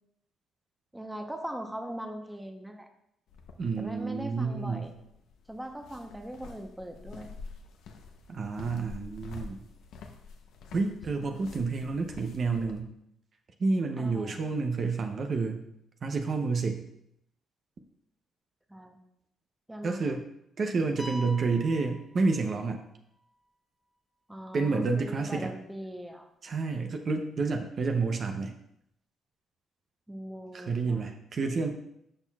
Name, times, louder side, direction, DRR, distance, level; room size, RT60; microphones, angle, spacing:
voice 1, 0.9-2.9 3.8-4.9 5.5-7.3 11.2-11.4 14.0-14.4 18.7-19.0 19.7-20.2 24.3-26.3 30.1-31.1, right 1 dB, 10° right, 5 dB, 0.8 m, -40 dB
sound 1, 3.3-12.8, left 4 dB, 80° left, 0.7 m, -48 dB
voice 2, 3.6-4.9 8.3-9.6 10.7-12.9 13.6-15.6 16.0-16.8 19.8-20.2 20.6-22.8 24.5-25.5 26.4-28.5 30.5-31.7, right 4 dB, 45° right, 5 dB, 0.7 m, -29 dB
sound 2, 21.0-22.9, equal, 15° left, 1.2 m, -44 dB
13.0 x 4.5 x 2.3 m, 0.78 s
cardioid pair, 90°, 0 cm